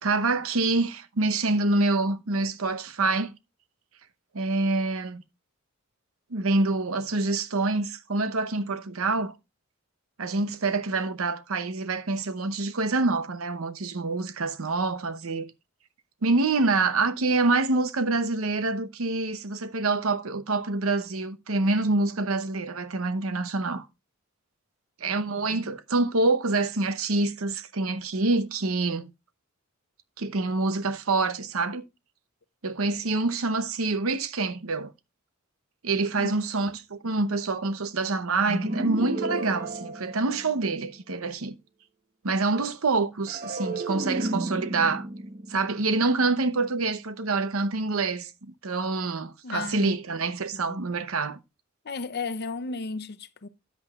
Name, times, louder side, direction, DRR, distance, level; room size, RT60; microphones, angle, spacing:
voice 1, 0.0-3.3 4.3-5.2 6.3-9.3 10.2-15.5 16.2-23.9 25.0-29.1 30.2-31.8 32.6-34.9 35.8-41.5 42.2-45.1 45.5-51.4, right 3 dB, 75° right, 0.8 m, -26 dB
sound 1, 38.5-40.9 43.3-46.6, right 2 dB, 40° right, 1.1 m, -33 dB
voice 2, 49.4-49.9 50.5-50.8 51.8-53.5, left 4 dB, 50° left, 0.6 m, -34 dB
13.0 x 8.6 x 2.3 m
head